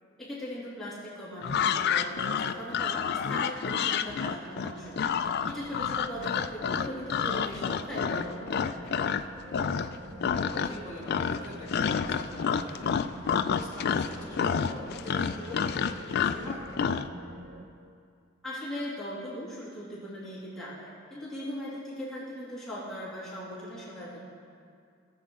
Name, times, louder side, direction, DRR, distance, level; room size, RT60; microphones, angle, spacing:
voice 1, 0.2-8.9 18.4-24.2, equal, ahead, -11 dB, 2.7 m, -39 dB
sound 1, 1.4-9.2 9.5-10.0 10.2-10.8 11.1-17.1, left 7 dB, 50° left, 0.3 m, -29 dB
sound 2, 4.8-17.7, right 1 dB, 55° right, 1.0 m, -46 dB
voice 2, 10.3-16.7, left 1 dB, 15° right, -9 dB, 2.7 m, -43 dB
18.0 x 7.7 x 3.7 m, 2.3 s
head